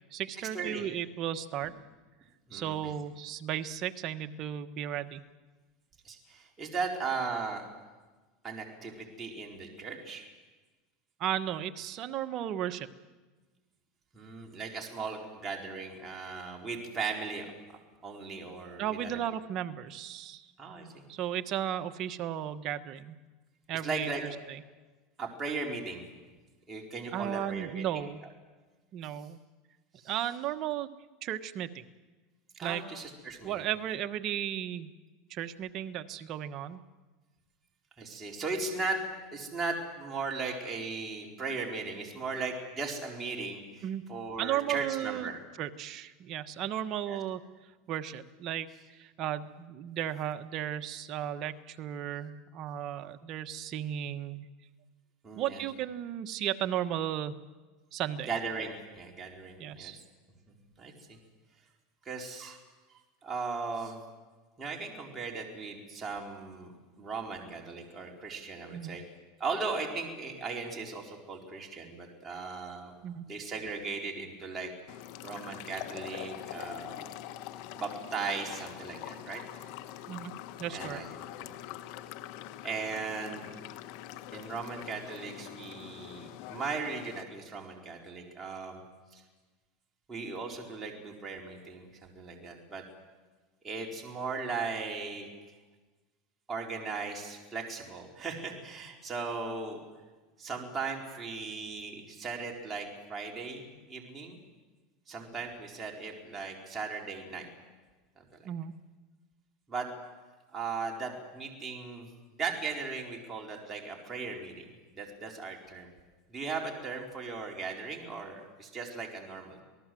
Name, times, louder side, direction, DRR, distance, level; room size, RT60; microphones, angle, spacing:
voice 1, 0.1-1.7 2.5-5.2 11.2-12.9 18.8-20.5 21.1-23.2 23.7-24.6 27.1-28.2 28.9-29.4 30.0-30.9 31.2-31.9 32.6-32.8 33.4-34.9 35.3-36.8 43.8-44.0 44.4-45.3 45.6-47.4 47.9-48.7 49.0-54.4 55.4-57.4 57.9-58.3 59.6-60.0 68.7-69.0 73.0-73.2 80.1-80.3 80.6-81.0 108.4-108.7, right 11 dB, 45° right, 9 dB, 1.3 m, -35 dB
voice 2, 2.5-2.9 6.0-7.6 8.4-10.3 14.1-17.5 18.0-19.2 20.6-21.0 23.8-24.2 25.2-26.0 26.7-28.3 30.0-30.1 32.5-33.7 38.0-39.0 39.3-45.4 47.1-47.2 55.2-55.6 58.3-60.0 60.8-61.2 62.0-62.6 63.2-64.0 64.6-66.7 67.0-69.0 69.4-72.9 73.3-74.7 75.2-77.1 77.7-79.4 80.7-81.5 82.6-83.5 84.3-88.8 89.1-89.2 90.1-92.8 93.6-95.3 96.5-99.8 100.4-104.4 105.1-107.5 108.2-108.4 109.7-109.9 110.5-112.1 112.3-115.9 116.3-119.6, right 4 dB, 20° right, 0 dB, 4.2 m, -37 dB
sound 1, 74.9-87.2, left 12 dB, 65° left, 1.5 m, -44 dB
27.5 x 19.0 x 7.8 m, 1.3 s
supercardioid pair, 125°, 0 cm